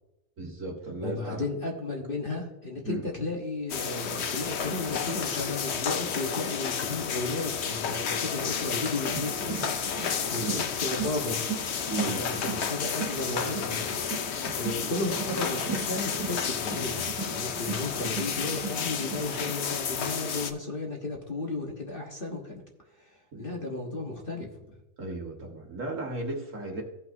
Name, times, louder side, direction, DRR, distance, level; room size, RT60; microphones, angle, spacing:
voice 1, 0.4-1.4 2.8-3.0 10.4-10.6 11.9-12.2 23.3-23.6 25.0-26.8, right 2 dB, 50° right, 1 dB, 1.9 m, -35 dB
voice 2, 1.0-9.8 10.3-11.4 12.0-13.9 14.5-17.1 17.3-22.6 23.0-24.7, left 2 dB, 35° left, 1 dB, 1.3 m, -34 dB
sound 1, 3.7-20.5, left 7 dB, 55° left, 0.8 m, -31 dB
sound 2, 9.1-19.5, right 7 dB, 70° right, 1.5 m, -38 dB
16.0 x 5.9 x 2.7 m, 0.96 s
omnidirectional pair, 1.7 m